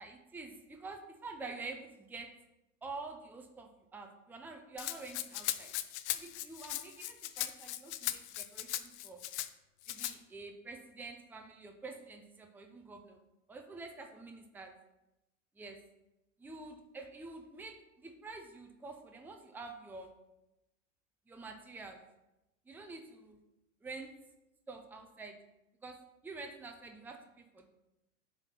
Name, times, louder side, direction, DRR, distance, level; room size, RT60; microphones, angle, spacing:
voice 1, 0.0-2.3 2.8-5.7 6.1-9.2 9.9-13.2 13.5-14.7 15.6-15.8 16.4-20.1 21.3-22.0 22.7-23.4 23.8-24.1 24.7-25.4 25.8-27.7, right 3 dB, 5° right, 4 dB, 0.6 m, -48 dB
Rattle (instrument), 4.8-9.5 9.8-10.1, left 14 dB, 60° left, 0.6 m, -38 dB
8.8 x 3.7 x 5.7 m, 0.94 s
hypercardioid pair, 105°, 39 cm